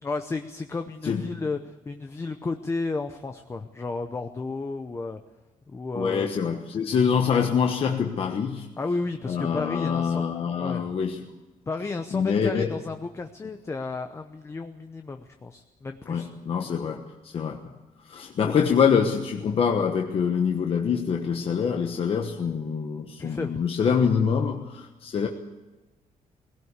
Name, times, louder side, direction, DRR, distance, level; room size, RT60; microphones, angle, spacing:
voice 1, 0.0-5.2 5.7-6.3 8.8-10.3 10.6-11.0 11.7-16.3 16.6-16.7 23.2-23.6, left 3 dB, 20° left, 7 dB, 0.8 m, -32 dB
voice 2, 5.9-8.7 9.3-11.3 12.1-12.7 16.1-17.7 18.1-25.3, left 6 dB, 40° left, 3 dB, 1.2 m, -25 dB
20.0 x 17.0 x 8.2 m, 1.1 s
cardioid pair, 170°, 14 cm